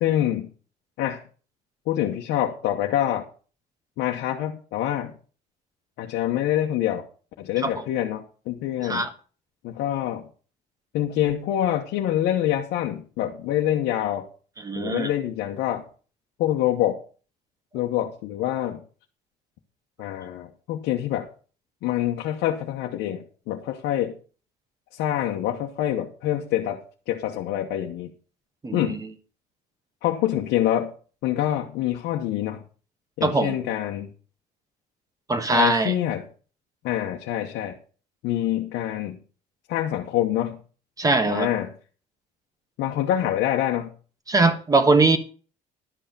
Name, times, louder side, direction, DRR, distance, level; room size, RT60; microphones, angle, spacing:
voice 1, 0.0-0.5 1.0-1.2 1.9-3.3 4.0-5.1 6.0-7.1 7.4-9.1 9.6-10.3 10.9-14.3 14.7-15.8 16.4-17.0 17.7-18.8 20.0-21.3 21.8-24.2 24.9-28.1 28.7-29.0 30.0-30.9 31.2-32.6 33.2-34.1 35.5-36.2 36.8-37.8 38.2-39.2 39.7-40.6 41.3-41.7 42.8-43.9, left 12 dB, 85° left, 1 dB, 1.1 m, -26 dB
voice 2, 14.6-15.1 28.6-29.0 33.2-33.5 35.3-35.9 41.0-41.5 44.3-45.2, right 3 dB, 20° right, 9 dB, 1.5 m, -21 dB
11.5 x 5.8 x 6.8 m, 0.39 s
cardioid pair, 110°, 17 cm